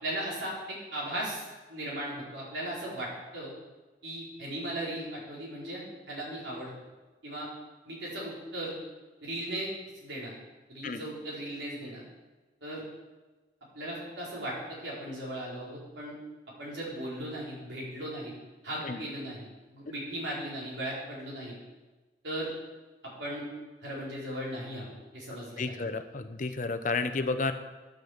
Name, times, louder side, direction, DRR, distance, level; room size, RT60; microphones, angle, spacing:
voice 1, 0.0-1.4 1.7-3.1 3.3-3.5 4.0-6.7 7.2-7.5 7.9-8.8 9.2-9.7 10.0-10.3 10.7-12.0 12.6-12.8 13.7-16.1 16.6-18.3 18.6-19.5 19.7-21.5 22.2-22.5 23.2-23.4 23.8-25.8, right 1 dB, 90° right, -5 dB, 4.4 m, -37 dB
voice 2, 25.6-27.5, left 3 dB, 45° left, 9 dB, 0.7 m, -31 dB
10.0 x 6.7 x 7.2 m, 1.2 s
head